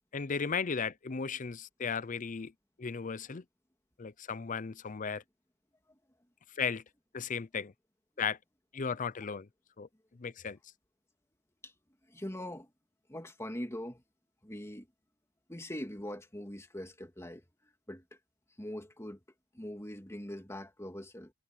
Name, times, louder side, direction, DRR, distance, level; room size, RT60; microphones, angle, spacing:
voice 1, 0.1-2.5 2.8-3.4 4.0-5.2 6.6-6.8 7.1-7.7 8.2-8.4 8.7-9.5 9.8-9.9 10.2-10.6, left 6 dB, 40° left, 0.6 m, -35 dB
voice 2, 12.1-12.7 13.1-14.0 14.4-14.9 15.5-17.4 17.9-18.2 18.6-19.2 19.5-21.3, left 1 dB, 15° left, 2.6 m, -42 dB
head